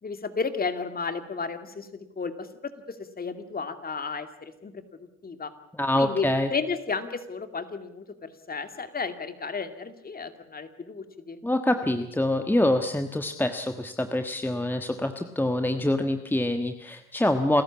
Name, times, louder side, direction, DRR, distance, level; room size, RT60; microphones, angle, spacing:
voice 1, 0.0-4.8 5.2-5.5 5.9-6.2 6.5-11.4, left 5 dB, 25° left, 9 dB, 2.5 m, -33 dB
voice 2, 5.7-6.5 11.4-17.6, left 1 dB, 5° left, 7 dB, 1.4 m, -25 dB
28.0 x 14.0 x 8.5 m, 0.82 s
supercardioid pair, 85°, 33 cm